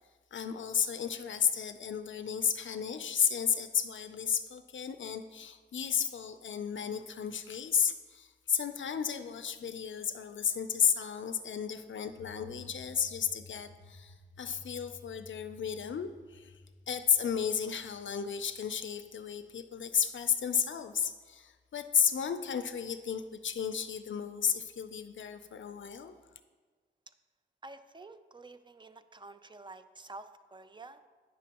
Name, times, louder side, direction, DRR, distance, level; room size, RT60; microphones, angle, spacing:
voice 1, 0.3-16.5 16.9-26.1, left 7 dB, 80° left, 10 dB, 0.4 m, -33 dB
sound 1, 12.0-18.6, left 2 dB, 70° right, 1.3 m, -55 dB
voice 2, 27.6-31.1, right 3 dB, 25° right, 11 dB, 0.4 m, -49 dB
9.4 x 6.1 x 2.9 m, 1.4 s
wide cardioid pair, 65°, 20 cm